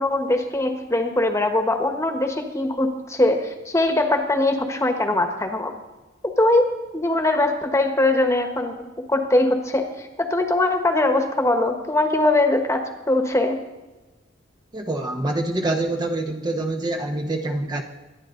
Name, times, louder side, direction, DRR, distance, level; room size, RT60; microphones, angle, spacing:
voice 1, 0.0-5.7 6.2-6.7 6.9-8.7 9.1-13.6, left 2 dB, 15° left, 5 dB, 1.4 m, -21 dB
voice 2, 14.7-17.8, right 2 dB, 20° right, 3 dB, 0.9 m, -25 dB
23.5 x 10.5 x 3.9 m, 1.1 s
head